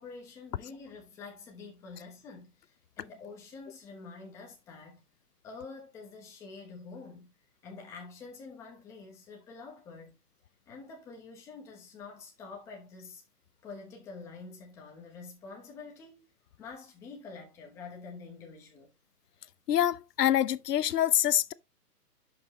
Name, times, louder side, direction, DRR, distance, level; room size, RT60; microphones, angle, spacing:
voice 1, 0.0-5.0 5.4-7.3 7.6-10.2 10.7-13.2 13.6-16.3 16.6-18.9, left 4 dB, 5° left, 1.0 m, -47 dB
voice 2, 19.7-21.5, left 11 dB, 80° left, 0.7 m, -25 dB
11.5 x 5.5 x 3.0 m
hypercardioid pair, 165°, 47 cm